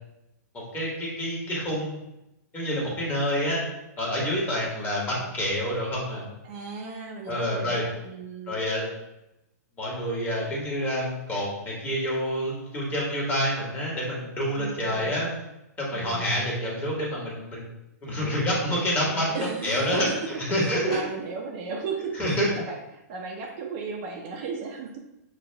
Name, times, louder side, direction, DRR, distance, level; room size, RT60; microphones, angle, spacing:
voice 1, 0.7-2.0 2.5-3.6 4.0-6.2 7.3-7.8 8.5-8.8 9.8-15.3 15.8-17.6 18.0-19.4 19.6-20.1 20.5-21.0 22.2-22.5, equal, 20° left, -4 dB, 1.5 m, -27 dB
voice 2, 6.4-8.6 14.6-15.2 15.9-16.2 19.3-20.1 20.6-25.0, right 5 dB, 40° right, 1 dB, 0.6 m, -36 dB
6.0 x 2.4 x 3.4 m, 0.90 s
hypercardioid pair, 135°, 9 cm